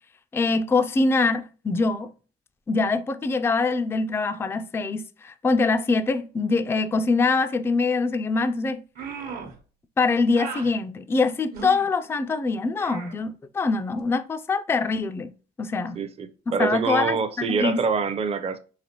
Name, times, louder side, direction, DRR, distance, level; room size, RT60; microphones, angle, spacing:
voice 1, 0.3-2.1 2.7-8.8 10.0-15.3 15.6-16.0 16.6-17.2 17.5-17.8, left 3 dB, 15° left, 0.3 m, -24 dB
sound 1, 8.9-9.6 10.3-10.7 11.5-11.9 12.8-13.1, right 5 dB, 65° right, 1.0 m, -36 dB
voice 2, 16.0-18.6, right 5 dB, 35° right, 0.5 m, -25 dB
4.0 x 2.9 x 2.9 m
cardioid pair, 110°, 17 cm